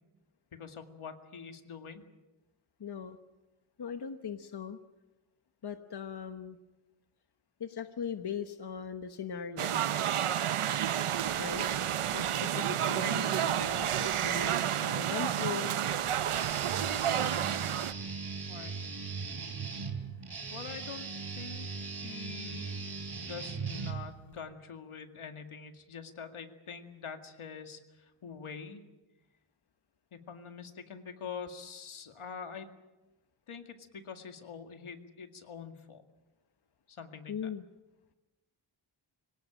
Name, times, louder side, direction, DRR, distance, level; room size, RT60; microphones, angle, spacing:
voice 1, 0.5-2.0 12.6-12.9 18.5-18.7 20.5-21.7 22.0-22.8 23.1-28.8 30.1-32.7 33.5-36.0 36.9-37.5, left 6 dB, 75° left, 6 dB, 2.2 m, -45 dB
voice 2, 2.8-3.2 3.8-4.8 5.6-6.6 7.6-9.8 11.4-11.7 12.1-15.7 37.3-37.6, left 7 dB, 50° left, 7 dB, 1.2 m, -39 dB
sound 1, 9.6-17.9, right 10 dB, 85° right, 0.8 m, -30 dB
Guitar, 16.3-24.4, right 4 dB, 50° right, 3.1 m, -39 dB
25.0 x 17.5 x 8.9 m, 1.1 s
wide cardioid pair, 145°, 49 cm